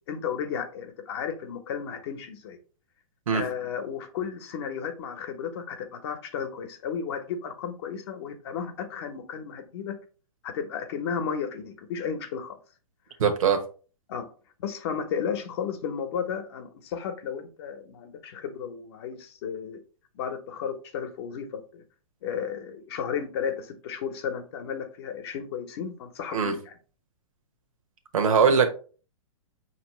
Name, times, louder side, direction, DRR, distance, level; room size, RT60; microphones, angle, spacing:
voice 1, 0.1-2.6 3.3-9.9 10.4-12.6 14.1-14.3 14.6-19.8 20.1-21.8 22.2-26.7, left 7 dB, 45° left, 6 dB, 0.9 m, -33 dB
voice 2, 13.2-13.6 26.3-26.5 28.1-28.7, right 6 dB, 70° right, 6 dB, 1.0 m, -21 dB
5.2 x 3.0 x 3.0 m, 0.38 s
hypercardioid pair, 135°, 18 cm